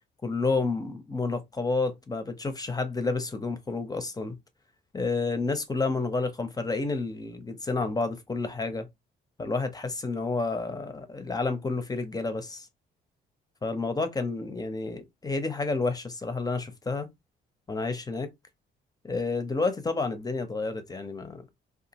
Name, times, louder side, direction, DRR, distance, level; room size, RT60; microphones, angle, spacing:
voice 1, 0.2-4.4 4.9-8.9 9.4-12.7 13.6-17.1 17.7-18.3 19.0-21.4, left 3 dB, 20° left, 0.6 m, -30 dB
2.8 x 2.4 x 2.8 m
cardioid pair, 90°, 20 cm